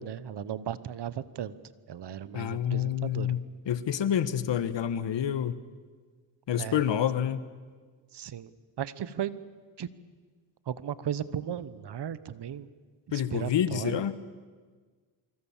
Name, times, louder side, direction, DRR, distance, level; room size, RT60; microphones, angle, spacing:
voice 1, 0.0-1.5 1.9-3.3 6.6-6.8 8.1-8.5 8.8-9.4 9.8-9.9 10.7-12.7 13.1-14.0, right 9 dB, 55° right, 16 dB, 1.2 m, -35 dB
voice 2, 2.3-5.5 6.5-7.4 13.1-14.2, left 9 dB, 65° left, 13 dB, 1.5 m, -28 dB
25.5 x 25.0 x 7.4 m, 1.5 s
cardioid pair, 85°, 47 cm